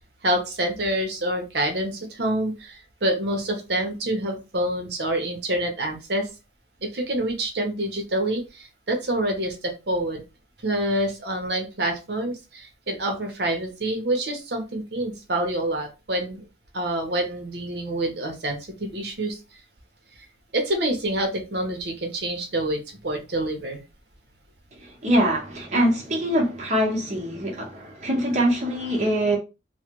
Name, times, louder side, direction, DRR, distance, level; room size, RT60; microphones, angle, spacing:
voice 1, 0.2-6.3 6.8-10.2 10.6-16.4 16.7-19.4 20.5-23.8, right 1 dB, 65° right, 0.9 m, -27 dB
voice 2, 24.8-29.4, equal, 40° right, 1.0 m, -23 dB
3.1 x 2.2 x 3.0 m
head